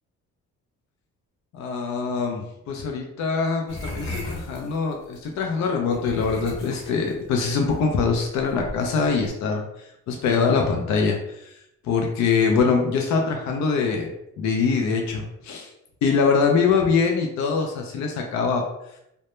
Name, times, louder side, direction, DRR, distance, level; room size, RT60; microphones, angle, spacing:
voice 1, 1.5-9.6 10.1-11.2 11.8-14.1 14.4-15.7 16.0-18.6, left 5 dB, 65° left, 1 dB, 0.5 m, -23 dB
sound 1, 3.7-5.2 5.9-9.3, left 1 dB, 45° left, 0.9 m, -36 dB
2.1 x 2.0 x 2.9 m, 0.81 s
cardioid pair, 90°, 30 cm